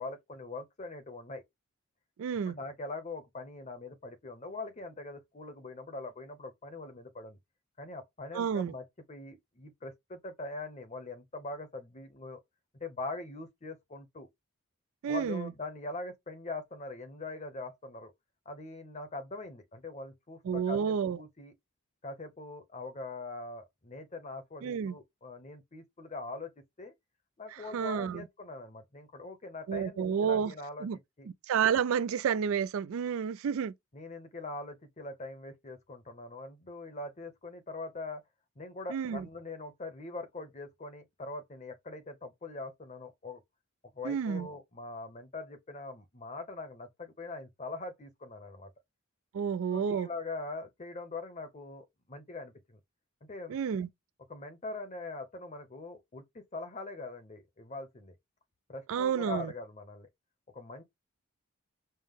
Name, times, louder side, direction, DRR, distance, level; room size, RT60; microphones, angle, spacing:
voice 1, 0.0-1.4 2.5-7.4 7.8-12.4 12.7-14.3 15.1-18.1 18.5-21.5 22.0-26.5 26.8-26.9 27.4-30.9 31.2-31.3 33.9-38.2 38.6-43.4 43.9-48.7 49.7-52.8 53.3-53.6 54.3-58.1 58.7-60.1 60.5-60.8, left 3 dB, 30° left, 0.8 m, -42 dB
voice 2, 2.2-2.6 8.3-8.7 15.0-15.5 20.4-21.2 24.6-25.0 27.5-28.2 29.7-30.5 30.8-31.0 31.5-33.7 38.9-39.2 44.0-44.5 49.3-50.1 53.5-53.9 58.9-59.5, right 7 dB, 65° right, 0.3 m, -30 dB
5.4 x 2.1 x 3.5 m
head